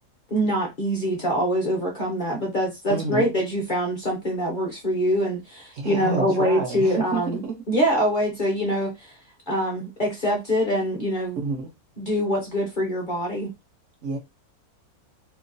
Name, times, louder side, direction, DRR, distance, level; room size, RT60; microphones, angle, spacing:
voice 1, 0.3-9.2 9.5-11.4 12.0-13.5, equal, 45° left, 0.7 m, -24 dB
voice 2, 2.9-3.3 5.7-7.5 11.4-11.7 14.0-14.2, right 4 dB, 65° right, 0.9 m, -29 dB
3.0 x 2.2 x 2.5 m
omnidirectional pair, 1.6 m